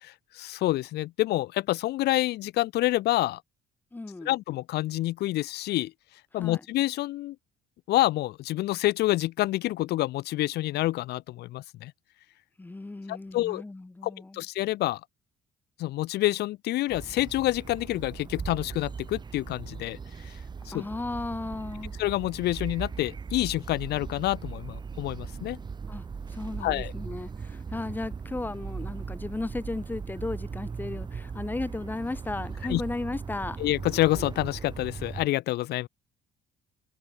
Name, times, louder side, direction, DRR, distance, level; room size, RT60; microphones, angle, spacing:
voice 1, 0.0-3.4 4.2-5.9 6.3-7.3 7.9-11.9 13.1-13.6 14.0-15.0 15.8-20.0 20.2-20.3 20.6-20.8 22.0-25.6 26.6-26.9 32.7-32.8 33.6-35.9, left 16 dB, 75° left, 1.1 m, -28 dB
voice 2, 3.9-4.3 6.4-6.6 12.6-14.4 20.7-21.9 25.9-26.0 26.3-33.6, left 2 dB, 10° left, 1.2 m, -35 dB
sound 1, 16.9-35.3, right 5 dB, 25° right, 0.9 m, -38 dB
cardioid pair, 110°, 17 cm